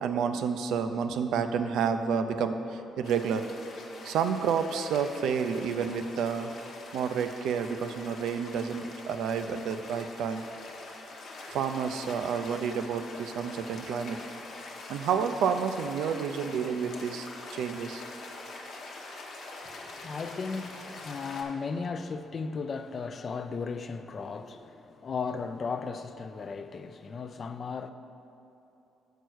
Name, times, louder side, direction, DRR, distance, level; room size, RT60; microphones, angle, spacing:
voice 1, 0.0-3.5 4.0-6.5 6.9-10.4 11.5-14.2 14.9-18.0 19.1-19.5 19.8-19.9, right 6 dB, 85° right, 0.4 m, -30 dB
sound 1, 3.0-21.4, left 2 dB, 70° left, 0.9 m, -44 dB
voice 2, 19.6-27.9, left 5 dB, 45° left, 0.4 m, -36 dB
6.8 x 4.6 x 6.2 m
cardioid pair, 90°, 0 cm